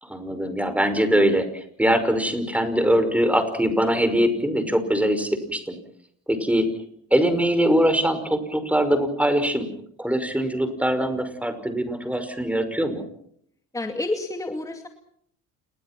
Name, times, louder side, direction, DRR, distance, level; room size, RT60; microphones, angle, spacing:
voice 1, 0.0-5.8 6.3-6.7 7.1-9.7 10.0-13.0, equal, 5° right, 10 dB, 5.5 m, -22 dB
voice 2, 13.7-14.9, left 2 dB, 10° left, 4 dB, 2.5 m, -29 dB
29.0 x 21.5 x 6.1 m, 0.67 s
cardioid pair, 105°, 29 cm